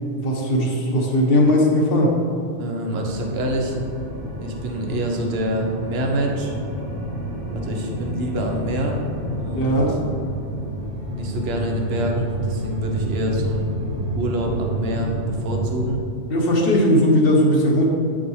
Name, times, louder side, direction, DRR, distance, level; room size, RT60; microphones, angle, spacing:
voice 1, 0.1-2.2 9.5-9.9 16.3-17.9, left 1 dB, 50° left, -1 dB, 1.3 m, -18 dB
voice 2, 2.6-3.7 4.4-6.5 7.5-9.0 9.4-10.0 11.1-13.7 14.1-16.0, right 1 dB, 60° right, 1 dB, 1.1 m, -26 dB
sound 1, 3.0-15.9, equal, 35° right, 1.1 m, -29 dB
8.0 x 6.1 x 3.1 m, 2.4 s
omnidirectional pair, 1.3 m